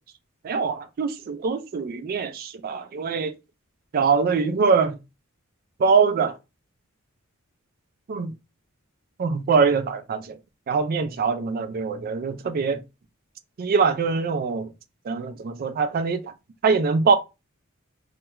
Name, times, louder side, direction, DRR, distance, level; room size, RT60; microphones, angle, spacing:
voice 1, 0.4-3.3 3.9-5.0 5.8-6.4 8.1-8.3 9.2-10.4 10.7-12.8 13.6-14.7 15.0-16.3 16.6-17.1, right 5 dB, 45° right, 0.3 m, -23 dB
2.2 x 2.2 x 2.9 m
head